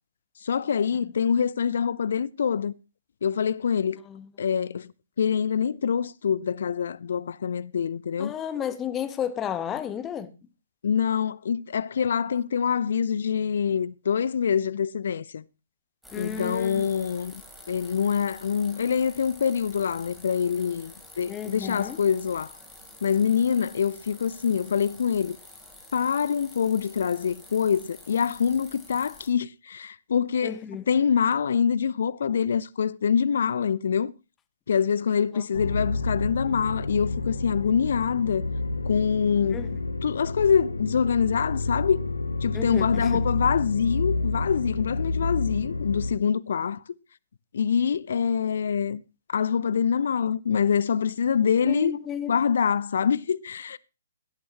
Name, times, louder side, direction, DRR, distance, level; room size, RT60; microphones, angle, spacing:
voice 1, 0.4-2.7 3.2-4.0 4.4-4.9 5.2-8.3 10.8-15.4 16.1-17.4 17.7-22.6 23.0-25.4 25.9-30.6 30.9-34.1 34.7-38.4 38.9-39.6 40.0-42.0 42.4-46.8 47.5-49.0 49.3-51.9 52.3-53.8, left 7 dB, 60° left, 0.5 m, -25 dB
voice 2, 8.2-10.3 16.1-16.9 21.3-22.0 30.4-30.9 35.3-35.4 39.5-39.7 42.5-43.3 51.6-52.3, left 9 dB, 15° left, 1.2 m, -32 dB
sound 1, 16.0-29.3, left 1 dB, ahead, 3.5 m, -48 dB
sound 2, 35.5-46.1, left 2 dB, 80° left, 1.1 m, -29 dB
17.0 x 12.0 x 3.0 m
figure-of-eight pair, 125°, 0 cm